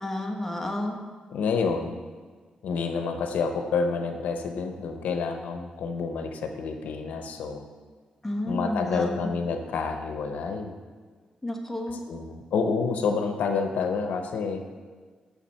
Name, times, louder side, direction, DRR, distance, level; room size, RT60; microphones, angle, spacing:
voice 1, 0.0-1.0 8.2-9.3 11.4-12.0, left 1 dB, 10° left, 1 dB, 1.4 m, -31 dB
voice 2, 1.3-2.0 2.6-7.6 8.5-10.7 11.9-14.6, left 5 dB, 85° left, 5 dB, 0.8 m, -28 dB
7.2 x 6.9 x 5.6 m, 1.5 s
cardioid pair, 95°, 3 cm